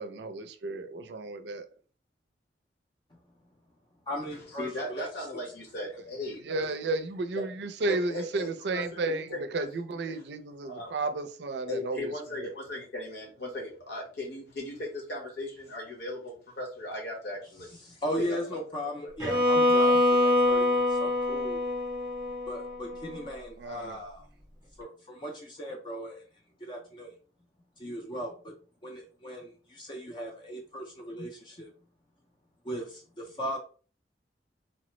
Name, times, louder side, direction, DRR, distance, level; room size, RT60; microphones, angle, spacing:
voice 1, 0.0-1.7 6.5-12.1 12.4-12.5 23.6-24.0, right 3 dB, 75° right, 9 dB, 0.4 m, -33 dB
voice 2, 4.1-5.1 17.8-21.6 22.5-24.3 24.8-26.2 26.6-27.1 27.8-28.5 28.8-31.7 32.6-33.6, equal, 25° left, 1 dB, 0.4 m, -37 dB
voice 3, 4.6-6.4 7.3-7.4 7.9-9.7 10.6-10.9 11.7-17.7 18.3-18.6 19.0-19.1, left 1 dB, 75° left, -2 dB, 1.2 m, -37 dB
Bowed string instrument, 19.2-23.2, left 1 dB, 20° right, 0.7 m, -25 dB
3.1 x 2.0 x 3.0 m, 0.39 s
head